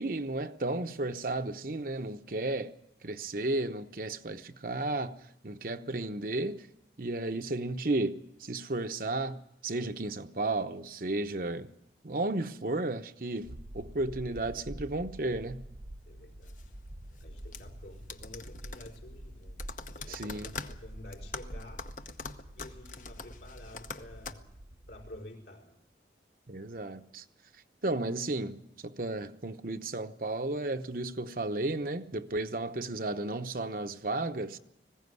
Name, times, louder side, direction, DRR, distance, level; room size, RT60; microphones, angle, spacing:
voice 1, 0.0-2.7 3.0-5.2 5.4-6.7 7.0-11.7 12.0-15.6 20.1-20.5 26.5-27.2 27.8-34.6, right 2 dB, 50° right, 0.9 m, -33 dB
sound 1, 13.4-25.2, right 1 dB, 70° right, 1.1 m, -47 dB
voice 2, 16.1-16.8 17.2-19.6 19.9-21.9 22.5-24.5 24.9-25.8, left 1 dB, 70° left, 4.9 m, -50 dB
sound 2, 16.4-24.3, left 4 dB, 45° left, 0.9 m, -45 dB
20.0 x 16.0 x 9.6 m
head